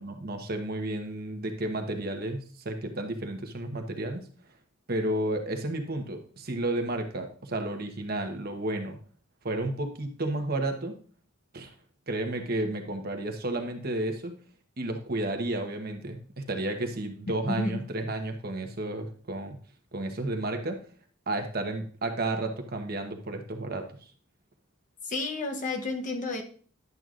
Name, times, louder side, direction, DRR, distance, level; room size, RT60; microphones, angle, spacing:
voice 1, 0.0-4.3 4.9-9.0 9.4-10.9 11.5-11.7 12.1-14.3 14.8-19.6 19.9-20.8 21.3-23.9, right 1 dB, 45° right, 5 dB, 1.0 m, -32 dB
voice 2, 17.5-17.8 25.0-26.4, left 2 dB, 40° left, 4 dB, 0.9 m, -31 dB
10.5 x 7.8 x 2.5 m, 0.44 s
head